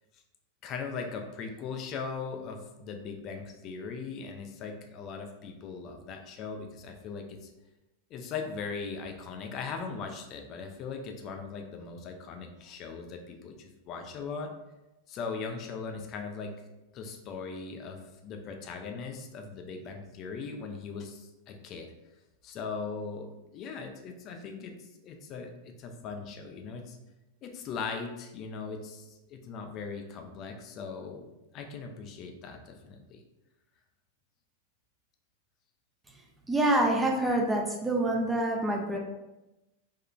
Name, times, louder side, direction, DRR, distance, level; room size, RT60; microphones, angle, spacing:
voice 1, 0.6-7.5 8.1-14.5 15.1-16.6 16.9-21.9 22.4-27.0 27.4-31.3 31.5-33.2, left 5 dB, 35° left, 5 dB, 0.5 m, -39 dB
voice 2, 36.5-39.0, right 1 dB, 10° right, 0 dB, 0.6 m, -26 dB
3.6 x 3.2 x 2.4 m, 0.98 s
figure-of-eight pair, 90°, 0 cm